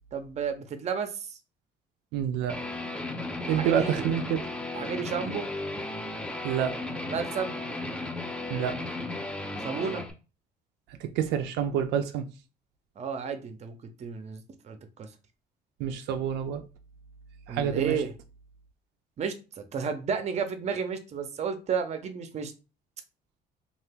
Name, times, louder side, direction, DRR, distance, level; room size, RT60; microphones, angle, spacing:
voice 1, 0.1-1.4 3.4-4.1 4.7-5.4 7.1-7.6 9.6-10.0 13.0-15.1 17.5-18.1 19.2-22.5, right 6 dB, 40° right, 0.6 m, -32 dB
voice 2, 2.1-2.6 3.5-4.4 6.4-7.0 8.5-8.8 10.9-12.3 15.8-16.6 17.5-18.0, right 9 dB, 90° right, 0.4 m, -28 dB
Guitar, 2.5-10.1, left 2 dB, 5° left, 0.6 m, -35 dB
2.8 x 2.4 x 3.4 m
cardioid pair, 110°, 17 cm